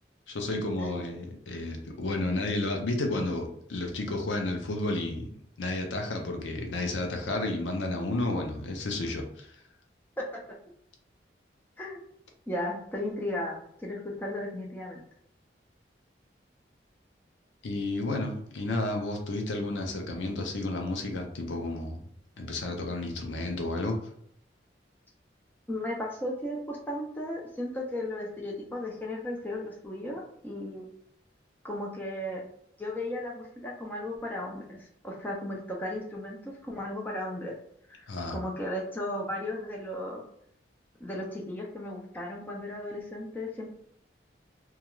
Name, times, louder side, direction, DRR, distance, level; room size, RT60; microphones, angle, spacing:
voice 1, 0.3-5.3 5.6-9.6 17.6-22.1 22.4-24.0 38.1-38.4, left 2 dB, 85° left, 3 dB, 0.6 m, -31 dB
voice 2, 12.5-15.0 25.7-30.9 31.6-32.4 32.8-37.5 37.9-40.2 41.0-43.7, left 1 dB, 10° left, -2 dB, 0.4 m, -35 dB
2.3 x 2.3 x 3.0 m, 0.69 s
head